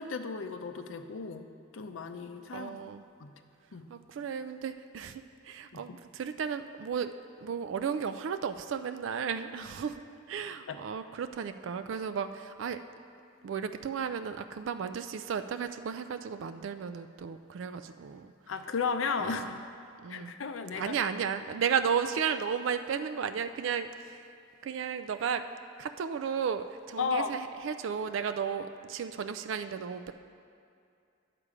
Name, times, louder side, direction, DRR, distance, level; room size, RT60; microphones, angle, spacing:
voice 1, 0.0-1.5 1.7-2.8 3.2-3.3 3.7-3.9 5.7-5.8 10.7-10.8 18.5-19.4 20.1-21.0 27.0-27.3, left 5 dB, 90° left, 8 dB, 0.6 m, -34 dB
voice 2, 2.5-3.0 3.9-7.1 7.4-10.0 10.3-12.8 13.4-18.3 19.2-19.5 20.0-20.3 20.7-24.3 24.6-25.5 25.8-30.1, right 7 dB, 70° right, 10 dB, 0.3 m, -34 dB
9.8 x 6.7 x 4.9 m, 2.5 s
head